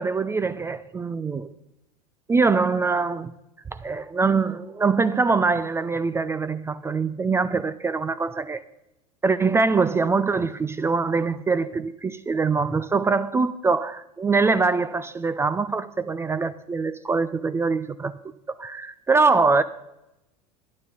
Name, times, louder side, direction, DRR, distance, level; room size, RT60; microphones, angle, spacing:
voice 1, 0.0-1.5 2.3-3.3 3.7-8.6 9.2-18.1 18.6-19.6, right 4 dB, 10° right, 0.4 m, -23 dB
11.5 x 10.5 x 4.0 m
figure-of-eight pair, 80°, 21 cm